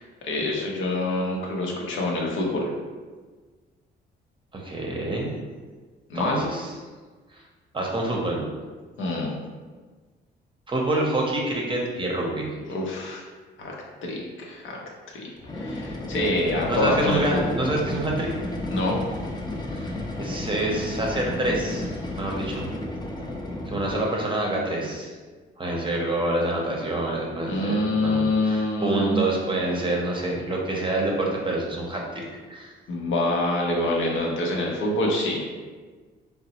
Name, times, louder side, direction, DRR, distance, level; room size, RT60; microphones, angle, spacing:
voice 1, 0.0-2.7 6.1-6.5 9.0-9.4 12.7-13.2 13.6-13.7 14.0-14.8 15.1-15.2 15.5-17.5 18.7-19.0 27.5-29.2 32.9-35.4, left 1 dB, 75° left, -1 dB, 0.7 m, -26 dB
voice 2, 4.5-5.3 6.1-6.7 7.3-7.4 7.7-8.5 10.7-12.5 16.7-18.3 19.7-22.7 23.7-25.1 25.6-27.8 28.0-32.0 32.5-32.7, right 2 dB, 25° right, -2 dB, 0.7 m, -27 dB
sound 1, 15.4-24.1, left 1 dB, 20° left, 0.4 m, -33 dB
3.8 x 2.0 x 2.8 m, 1.4 s
cardioid pair, 90°, 20 cm